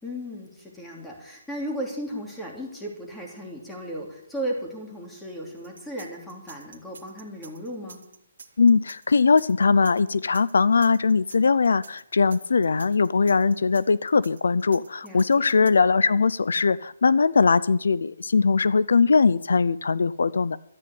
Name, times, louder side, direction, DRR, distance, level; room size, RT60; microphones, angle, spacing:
voice 1, 0.0-8.0 15.0-15.4, equal, 5° left, -1 dB, 2.9 m, -35 dB
sound 1, 5.6-15.7, right 5 dB, 75° right, 1.8 m, -48 dB
voice 2, 8.6-20.6, left 4 dB, 80° left, 19 dB, 0.5 m, -20 dB
13.0 x 9.5 x 8.5 m, 0.74 s
hypercardioid pair, 165°, 0 cm